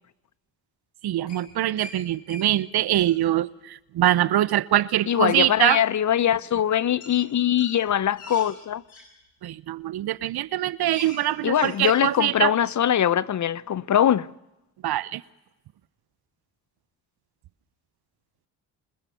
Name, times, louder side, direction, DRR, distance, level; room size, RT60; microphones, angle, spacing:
voice 1, 1.0-5.8 9.4-12.5 14.8-15.2, right 13 dB, 50° right, 0.9 m, -23 dB
sound 1, 1.3-1.9 2.3-2.4 2.7-3.2 5.4-5.5 7.0-7.1 7.5-9.0 9.7-10.0 10.3-10.4 10.7-11.2 11.5-12.0, left 1 dB, 85° left, 7.3 m, -43 dB
voice 2, 5.1-8.8 11.4-14.3, left 10 dB, 40° left, 0.7 m, -22 dB
25.0 x 21.0 x 6.9 m
hypercardioid pair, 45°, 47 cm